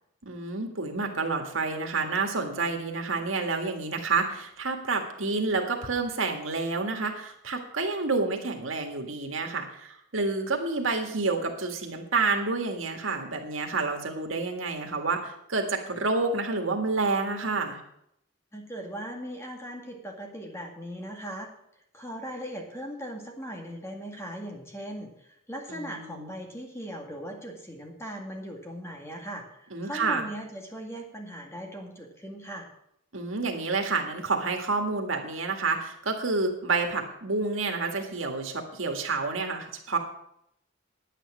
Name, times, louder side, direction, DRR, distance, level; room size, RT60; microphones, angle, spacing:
voice 1, 0.2-17.8 25.7-26.3 29.7-30.2 33.1-40.0, right 3 dB, 90° right, 3 dB, 1.9 m, -29 dB
voice 2, 18.5-21.5 21.9-25.1 25.5-32.7, equal, 15° left, 1 dB, 2.0 m, -39 dB
9.9 x 9.2 x 6.2 m, 0.75 s
head